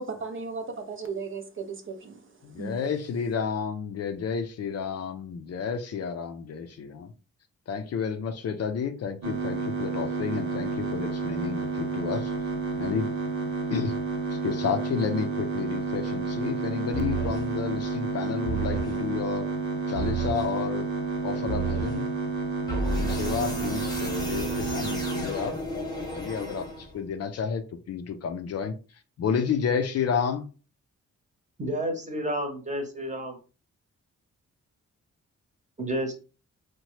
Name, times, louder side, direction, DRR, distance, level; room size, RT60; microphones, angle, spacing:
voice 1, 0.0-2.2 2.6-2.7, right 4 dB, 45° right, 0.4 m, -35 dB
voice 2, 2.4-7.1 7.7-12.3 12.8-13.1 13.7-13.9 14.3-19.5 19.9-20.9 21.2-22.1 22.9-25.6 26.1-28.7 29.2-30.5, left 6 dB, 55° left, 0.5 m, -31 dB
sound 1, 9.2-25.2, right 4 dB, 65° right, 0.8 m, -30 dB
sound 2, 16.9-17.5 18.4-19.0 19.9-20.5 21.5-22.0 22.7-27.1, right 2 dB, 15° left, 0.9 m, -32 dB
voice 3, 31.6-33.4 35.8-36.1, right 1 dB, 25° right, 0.9 m, -30 dB
2.9 x 2.1 x 3.0 m
cardioid pair, 90°, 30 cm